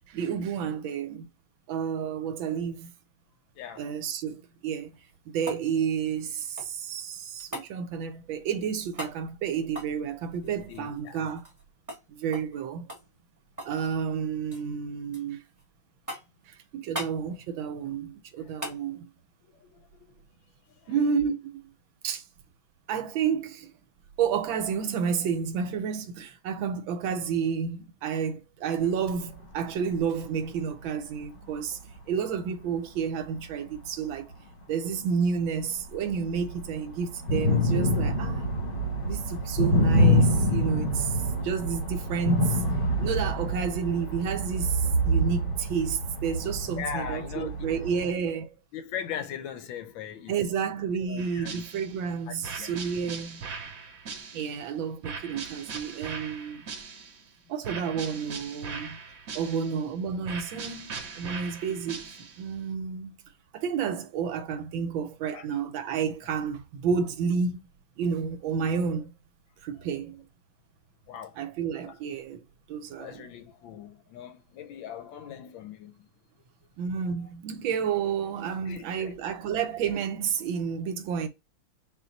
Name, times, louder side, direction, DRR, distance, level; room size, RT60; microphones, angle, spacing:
voice 1, 0.1-1.3 1.7-2.9 3.8-4.9 5.3-11.4 12.1-12.9 13.6-15.4 16.5-19.1 20.9-21.6 22.0-22.2 22.9-23.7 24.2-31.8 32.1-34.3 34.7-38.5 39.0-42.6 43.0-48.5 50.3-53.4 54.3-56.7 57.5-59.0 59.3-62.1 62.4-63.2 63.5-67.6 68.0-69.1 69.6-70.2 71.4-72.4 72.7-73.2 76.8-81.3, right 6 dB, 75° right, 1.3 m, -30 dB
voice 2, 3.6-3.9 10.4-11.2 18.4-18.5 19.4-20.2 20.8-20.9 46.7-47.7 48.7-50.3 51.0-51.6 52.3-52.7 58.8-58.9 59.4-59.6 65.3-65.5 71.1-71.4 71.9-72.0 72.9-75.9 78.7-79.1, left 8 dB, 75° left, 1.3 m, -40 dB
sound 1, 4.8-6.9 7.5-7.7 8.9-9.2 9.7-11.6 11.9-12.0 12.3-12.5 12.9-13.8 14.1-14.7 15.1-15.6 16.1-16.4 16.9-17.2 18.6-18.8 21.2-21.3, equal, 10° right, 1.1 m, -40 dB
sound 2, 29.3-29.4 30.0-30.1 31.0-31.1 31.7-31.8 33.8-33.9 34.3-34.4 35.5-35.6 35.9-48.1, equal, 35° left, 0.9 m, -26 dB
sound 3, 51.2-52.0 52.4-54.6 55.0-57.3 57.6-59.9 60.2-62.5, right 5 dB, 55° right, 1.0 m, -40 dB
4.1 x 2.6 x 3.9 m
omnidirectional pair, 2.3 m